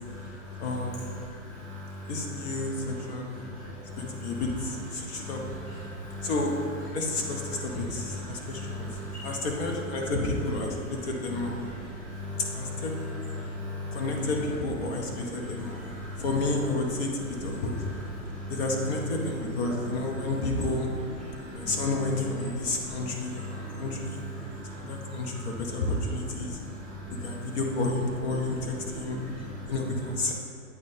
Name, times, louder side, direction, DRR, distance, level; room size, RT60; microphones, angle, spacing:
voice 1, 0.0-1.1 1.5-2.2 2.5-3.0 3.3-4.4 5.0-6.3 7.2-9.5 11.6-14.0 15.2-16.2 17.6-18.6 19.6-19.7 21.2-21.8 22.6-25.6 26.2-27.6 28.3-28.5 28.8-29.7, left 1 dB, ahead, -10 dB, 0.4 m, -39 dB
voice 2, 0.6-1.0 2.1-3.4 4.0-5.4 6.2-6.5 6.9-8.9 9.2-11.6 12.5-12.9 13.9-15.8 16.2-17.8 18.5-20.9 21.5-24.2 24.8-26.6 27.2-29.2 29.7-30.3, left 2 dB, 45° left, 1 dB, 1.1 m, -31 dB
8.6 x 3.1 x 4.2 m, 2.2 s
hypercardioid pair, 140°, 43 cm